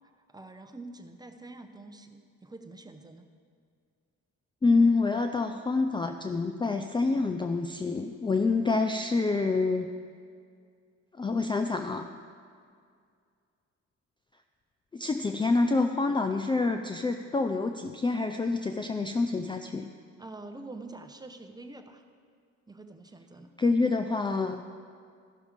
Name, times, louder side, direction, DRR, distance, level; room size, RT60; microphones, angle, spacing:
voice 1, 0.3-3.3 20.2-22.0 22.7-23.5, right 2 dB, 15° right, 7 dB, 0.8 m, -46 dB
voice 2, 4.6-9.9 11.2-12.1 14.9-19.9 23.6-24.6, left 3 dB, 15° left, 6 dB, 0.4 m, -27 dB
14.5 x 6.2 x 5.1 m, 2.2 s
cardioid pair, 90°, 30 cm